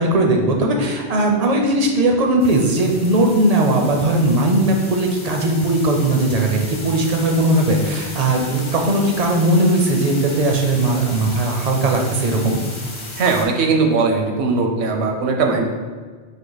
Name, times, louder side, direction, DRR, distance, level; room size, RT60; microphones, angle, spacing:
voice 1, 0.0-12.6, right 1 dB, 50° right, 2 dB, 0.5 m, -18 dB
sound 1, 2.4-13.5, left 2 dB, 35° left, 0.5 m, -35 dB
voice 2, 13.2-15.6, right 4 dB, 80° right, 3 dB, 0.9 m, -19 dB
4.4 x 2.7 x 3.9 m, 1.5 s
omnidirectional pair, 1.1 m